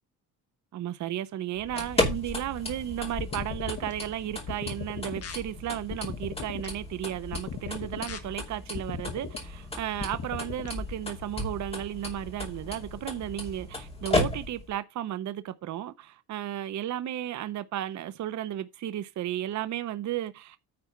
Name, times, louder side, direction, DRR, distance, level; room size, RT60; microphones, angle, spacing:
voice 1, 0.7-20.6, right 12 dB, 50° right, 0.7 m, -34 dB
sound 1, 1.6-14.8, left 2 dB, 15° left, 2.7 m, -35 dB
sound 2, 3.2-3.9 4.5-5.3 5.9-6.7 7.3-8.2 8.7-9.4 10.0-10.7, left 6 dB, 40° left, 1.4 m, -38 dB
9.7 x 4.2 x 5.9 m
cardioid pair, 130°, 38 cm